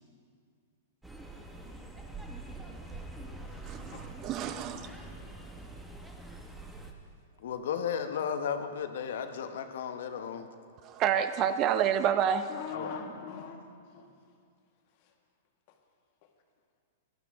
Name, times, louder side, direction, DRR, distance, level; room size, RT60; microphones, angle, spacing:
sound 1, 1.0-6.9, right 2 dB, 5° right, 1.2 m, -45 dB
voice 1, 2.8-4.1 4.9-5.0 12.5-14.1 15.0-15.1 15.7-15.8, left 5 dB, 50° left, 3 dB, 1.7 m, -44 dB
voice 2, 3.7-4.9 10.8-12.5, right 9 dB, 35° right, 11 dB, 0.7 m, -29 dB
voice 3, 7.4-10.5 12.7-12.9, left 7 dB, 70° left, 8 dB, 1.1 m, -34 dB
17.0 x 12.0 x 3.6 m, 2.2 s
hypercardioid pair, 130°, 0 cm